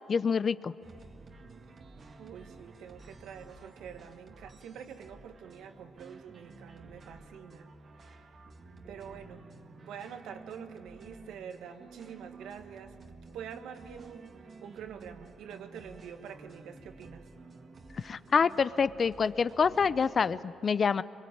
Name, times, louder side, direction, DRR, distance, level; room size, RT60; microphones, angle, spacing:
voice 1, 0.1-0.7 18.0-21.0, left 6 dB, 45° left, 16 dB, 0.6 m, -27 dB
sound 1, 0.8-20.4, right 3 dB, 45° right, 1.8 m, -52 dB
voice 2, 2.2-7.7 8.0-8.3 8.9-9.4 9.8-17.2, right 8 dB, 80° right, 7 dB, 1.7 m, -46 dB
25.0 x 23.0 x 8.7 m, 2.6 s
cardioid pair, 90°, 0 cm